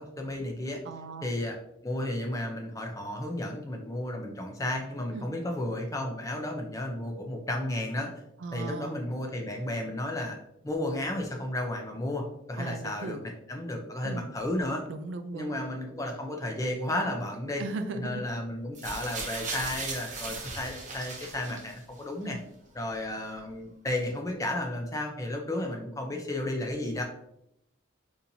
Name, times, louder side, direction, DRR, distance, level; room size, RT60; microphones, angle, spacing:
voice 1, 0.0-0.8 1.2-1.6 1.8-8.1 8.5-10.4 10.6-14.8 15.3-17.6 17.9-22.4 22.7-27.0, left 1 dB, 15° left, 2 dB, 0.4 m, -33 dB
voice 2, 0.9-1.4 5.1-5.3 8.4-9.0 12.6-13.3 14.0-14.3 14.9-15.6 17.6-18.2 22.2-22.4, right 3 dB, 75° right, 8 dB, 0.4 m, -37 dB
sound 1, 18.7-22.0 22.9-23.0, right 3 dB, 40° right, 0.6 m, -38 dB
4.2 x 2.6 x 2.6 m, 0.79 s
head